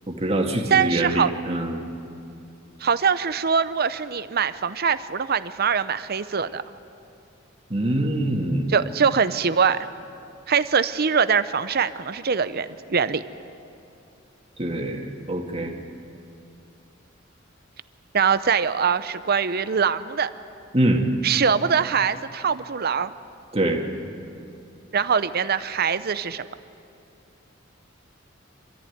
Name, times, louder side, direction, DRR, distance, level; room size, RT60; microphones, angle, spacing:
voice 1, 0.1-1.8 7.7-8.7 14.6-15.7 20.7-21.0 23.5-23.8, right 1 dB, 30° right, 1 dB, 2.1 m, -24 dB
voice 2, 0.7-1.3 2.8-6.6 8.7-9.9 10.5-13.2 18.1-20.3 21.2-23.1 24.9-26.4, right 6 dB, 50° right, 13 dB, 0.7 m, -23 dB
26.0 x 14.0 x 9.4 m, 2.6 s
head